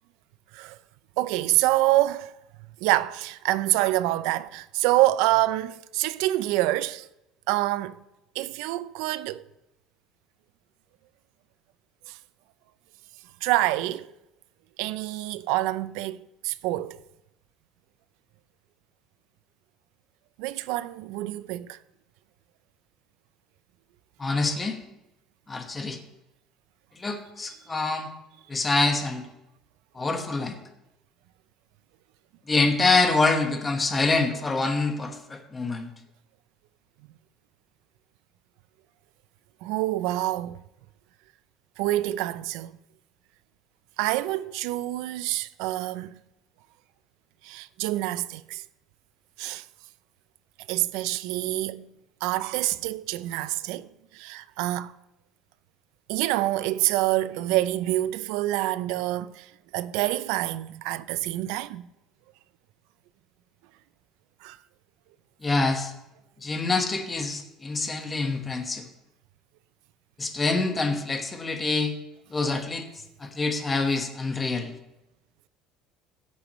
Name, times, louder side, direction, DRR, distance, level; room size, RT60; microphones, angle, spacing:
voice 1, 1.2-2.3 2.8-7.1 7.5-8.0 8.4-9.4 12.1-12.2 13.4-14.1 14.8-16.2 16.4-17.0 20.4-21.8 39.6-40.6 41.8-42.7 44.0-46.2 47.4-48.6 49.4-49.7 50.7-51.9 52.2-53.9 54.1-54.9 56.1-61.9 64.4-64.6, right 16 dB, 80° right, 0.5 m, -26 dB
voice 2, 24.2-24.8 25.5-26.0 27.0-28.1 28.5-29.2 29.9-30.6 32.5-35.9 65.4-65.9 66.4-68.8 70.2-72.0 72.3-72.9 73.2-74.7, left 3 dB, 20° left, 1.4 m, -26 dB
16.0 x 8.5 x 3.1 m
cardioid pair, 140°, 0 cm